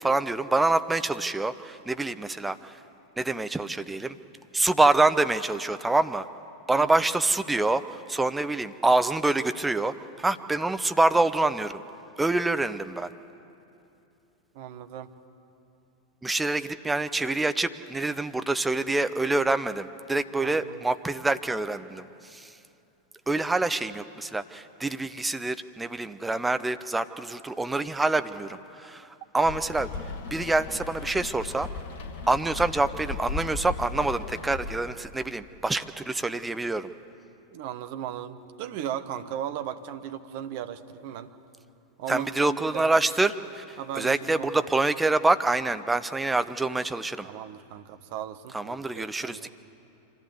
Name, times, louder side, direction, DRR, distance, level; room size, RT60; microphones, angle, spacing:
voice 1, 0.0-2.8 3.2-4.2 4.5-6.3 6.7-11.8 12.2-13.1 16.2-22.6 23.3-29.9 30.3-31.7 32.3-36.9 42.1-47.3 48.5-49.5, right 2 dB, 10° right, 10 dB, 0.7 m, -26 dB
voice 2, 14.5-15.1 20.4-20.8 37.5-41.3 42.0-42.9 43.8-44.7 47.2-49.5, right 10 dB, 50° right, 10 dB, 1.0 m, -37 dB
Rain, 29.4-34.8, left 4 dB, 50° left, 1.7 m, -36 dB
25.0 x 14.5 x 8.2 m, 2.8 s
figure-of-eight pair, 90°, 0 cm